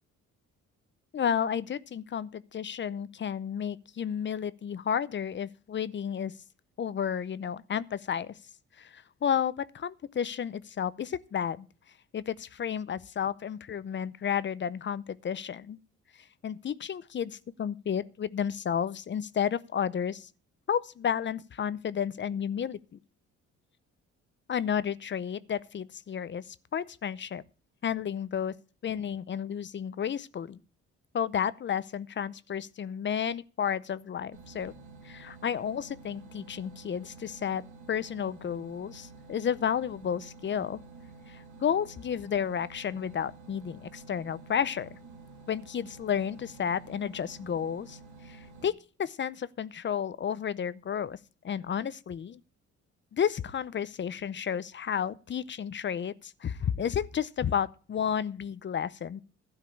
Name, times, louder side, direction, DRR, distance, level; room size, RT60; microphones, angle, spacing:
voice 1, 1.1-6.3 6.8-8.3 8.8-11.7 12.1-15.8 16.4-20.3 20.7-23.0 24.5-27.4 27.8-28.5 28.8-30.6 31.1-34.7 35.0-37.6 37.9-40.8 41.3-45.0 45.5-48.0 48.3-51.2 51.4-52.4 53.1-59.2, left 8 dB, 40° left, 0.6 m, -32 dB
sound 1, 34.3-48.7, right 4 dB, 80° right, 1.6 m, -50 dB
12.5 x 4.9 x 8.6 m
cardioid pair, 90°, 30 cm